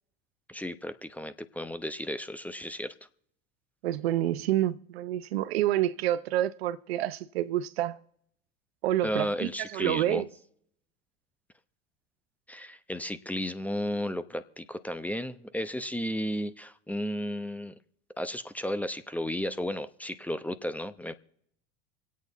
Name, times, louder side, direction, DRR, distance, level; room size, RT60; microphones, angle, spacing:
voice 1, 0.5-2.9 9.0-10.2 12.5-17.7 18.2-21.1, equal, 5° left, 0.8 m, -33 dB
voice 2, 3.8-8.0 8.8-10.3, right 13 dB, 75° right, 0.7 m, -28 dB
25.5 x 8.6 x 4.1 m
hypercardioid pair, 80°, 31 cm